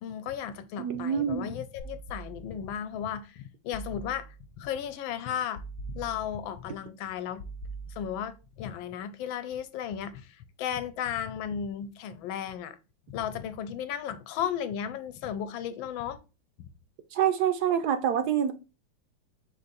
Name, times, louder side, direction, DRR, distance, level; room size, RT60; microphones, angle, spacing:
voice 1, 0.0-5.6 5.9-7.4 7.9-12.8 13.1-16.2, left 9 dB, 85° left, 1.4 m, -35 dB
voice 2, 0.8-1.5 17.1-18.5, right 9 dB, 75° right, 0.9 m, -26 dB
sound 1, 1.8-2.8 3.7-4.6 5.5-6.6 7.4-8.5, right 3 dB, 65° left, 1.3 m, -43 dB
5.0 x 2.6 x 4.0 m
omnidirectional pair, 2.1 m